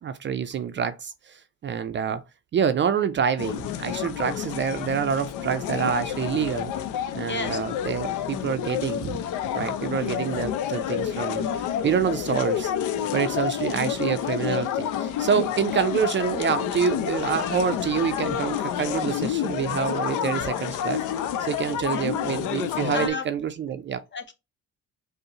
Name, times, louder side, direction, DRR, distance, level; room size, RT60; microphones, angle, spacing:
voice 1, 0.0-2.2 2.5-6.7 7.1-9.2 9.5-11.5 11.8-12.7 13.1-21.0 21.4-24.0, right 7 dB, 40° right, 0.4 m, -27 dB
sound 1, 3.4-23.1, left 9 dB, 90° left, 0.5 m, -29 dB
voice 2, 7.3-7.6 21.6-22.2 22.9-23.2 24.1-24.3, left 4 dB, 35° left, 0.8 m, -32 dB
5.2 x 2.0 x 2.8 m
cardioid pair, 90°, 30 cm